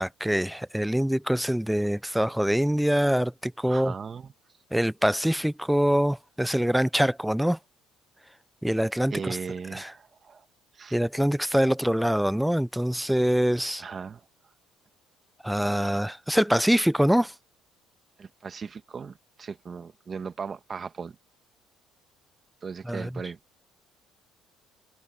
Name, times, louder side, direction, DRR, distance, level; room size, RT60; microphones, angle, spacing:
voice 1, 0.0-3.9 4.7-7.6 8.6-9.4 9.7-9.9 10.9-13.8 15.4-17.3 22.9-23.1, equal, ahead, 0.4 m, -24 dB
voice 2, 3.6-4.3 9.1-10.5 10.7-11.0 13.8-14.3 15.8-15.9 18.2-21.1 22.6-23.4, right 5 dB, 30° right, 1.3 m, -38 dB
cardioid pair, 120°, 0 cm